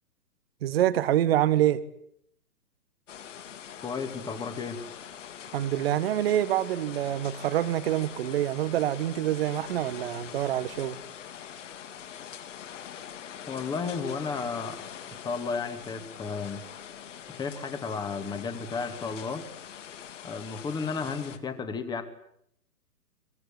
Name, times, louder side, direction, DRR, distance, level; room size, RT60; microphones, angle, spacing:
voice 1, 0.6-1.8 5.5-11.0, right 12 dB, 40° right, 14 dB, 1.5 m, -26 dB
sound 1, 3.1-21.4, left 9 dB, 50° left, 3.2 m, -43 dB
voice 2, 3.8-4.8 13.5-14.8 15.2-16.6 17.3-19.4 20.2-22.0, left 5 dB, 10° left, 9 dB, 2.2 m, -33 dB
23.5 x 22.5 x 9.9 m, 0.71 s
figure-of-eight pair, 135°, 46 cm